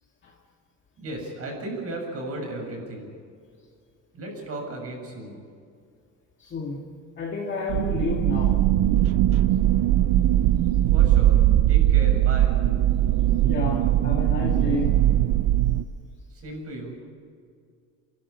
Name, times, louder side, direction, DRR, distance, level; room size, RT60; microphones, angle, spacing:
voice 1, 1.0-3.1 4.1-5.4 10.9-11.4 11.7-12.6 16.3-16.9, right 2 dB, 45° right, 1 dB, 7.2 m, -35 dB
voice 2, 6.4-6.8 7.2-8.6 13.4-15.0, left 4 dB, 35° left, -2 dB, 2.3 m, -30 dB
sound 1, 7.7-15.8, right 13 dB, 85° right, 0.7 m, -20 dB
28.0 x 12.0 x 10.0 m, 2.2 s
cardioid pair, 145°, 32 cm